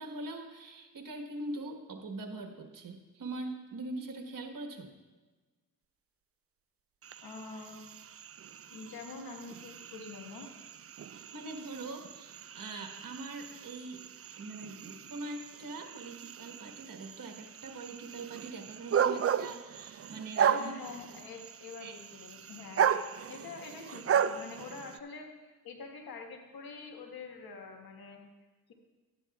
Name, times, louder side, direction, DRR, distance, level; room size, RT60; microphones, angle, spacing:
voice 1, 0.0-4.9 11.1-14.0 14.3-20.7 21.8-22.0, right 2 dB, 65° right, 4 dB, 1.4 m, -42 dB
sound 1, 7.0-25.0, right 8 dB, 40° right, 0.4 m, -35 dB
voice 2, 7.2-7.8 8.7-10.5 20.4-22.9 23.3-25.3 25.6-28.2, left 4 dB, 80° left, 2 dB, 1.5 m, -45 dB
13.0 x 9.5 x 2.4 m, 1.2 s
cardioid pair, 60°, 36 cm